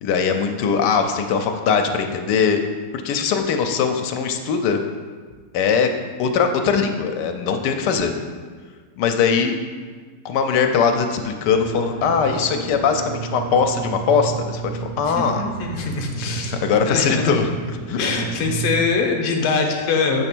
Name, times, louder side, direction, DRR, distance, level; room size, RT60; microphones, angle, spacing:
voice 1, 0.0-2.6 3.0-4.8 5.5-5.9 6.2-8.1 9.0-9.6 10.2-14.6 15.0-15.4 16.2-17.5 17.9-18.0, left 6 dB, 80° left, 5 dB, 1.2 m, -20 dB
sound 1, 11.5-18.9, right 6 dB, 75° right, 1.1 m, -31 dB
voice 2, 15.1-16.6 16.9-17.3 18.0-20.3, left 4 dB, 50° left, 2 dB, 0.9 m, -23 dB
7.2 x 3.2 x 6.0 m, 1.5 s
omnidirectional pair, 1.8 m